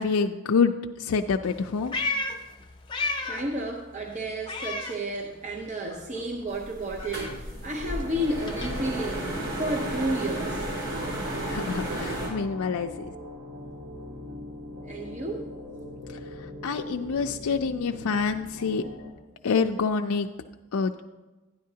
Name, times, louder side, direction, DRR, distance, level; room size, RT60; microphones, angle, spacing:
voice 1, 0.0-2.0 11.4-13.1 16.1-16.2 16.6-18.8 19.4-20.3 20.7-21.0, left 5 dB, 80° left, 4 dB, 0.4 m, -27 dB
Meow, 1.4-3.6 3.9-5.6 5.9-10.1, left 3 dB, 20° left, 0.7 m, -35 dB
voice 2, 3.2-9.2 9.6-10.6 14.8-15.5, right 1 dB, 35° right, 1 dB, 0.7 m, -31 dB
sound 1, 6.5-12.3, right 1 dB, 60° right, 3.9 m, -33 dB
sound 2, 7.6-19.1, left 1 dB, 75° right, 2.7 m, -42 dB
12.5 x 10.0 x 2.8 m, 1.1 s
head